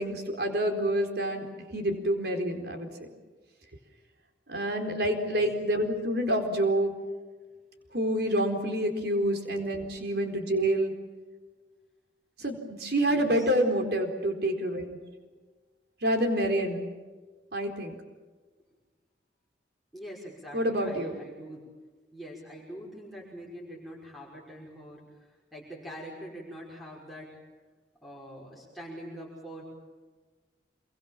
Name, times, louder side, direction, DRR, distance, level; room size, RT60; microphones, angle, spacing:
voice 1, 0.0-2.9 4.5-6.9 7.9-10.9 12.4-15.0 16.0-16.8 17.5-17.9 20.5-21.1, right 1 dB, 60° right, 4 dB, 4.2 m, -27 dB
voice 2, 5.0-5.4 13.1-13.5 19.9-21.7 22.1-27.4 28.0-29.6, equal, ahead, -4 dB, 5.7 m, -44 dB
27.0 x 23.5 x 7.4 m, 1.3 s
head